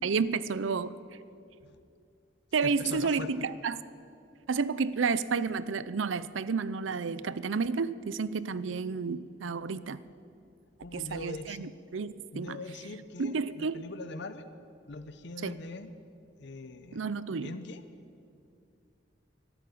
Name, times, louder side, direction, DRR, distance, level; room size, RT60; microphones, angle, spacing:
voice 1, 0.0-0.9 2.5-3.8 4.5-10.0 10.9-12.6 13.2-13.8 15.4-15.6 16.9-17.5, right 5 dB, 85° right, 17 dB, 0.6 m, -31 dB
voice 2, 2.6-3.3 10.8-11.7 12.3-14.5 14.9-15.9 16.4-17.1 17.4-17.8, left 3 dB, 65° left, 11 dB, 0.8 m, -42 dB
13.0 x 12.5 x 8.5 m, 2.5 s
head